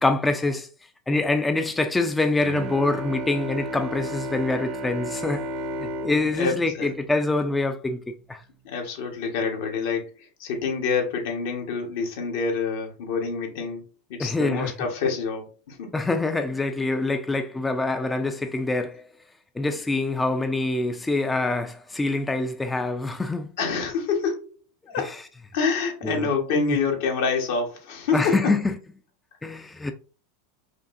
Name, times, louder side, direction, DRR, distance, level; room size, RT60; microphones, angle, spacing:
voice 1, 0.0-0.7 1.1-5.5 5.8-8.4 14.2-14.7 15.9-19.0 19.6-23.5 25.0-25.2 26.0-26.3 26.6-26.8 28.1-28.8 29.4-29.9, left 2 dB, 10° left, 0.4 m, -25 dB
Bowed string instrument, 2.4-8.0, right 1 dB, 55° right, 0.7 m, -34 dB
voice 2, 6.4-6.9 8.6-13.8 14.1-15.9 23.6-24.5 24.9-25.1 25.5-28.5, left 5 dB, 70° left, 1.3 m, -27 dB
5.0 x 2.7 x 2.5 m
supercardioid pair, 125°, 0 cm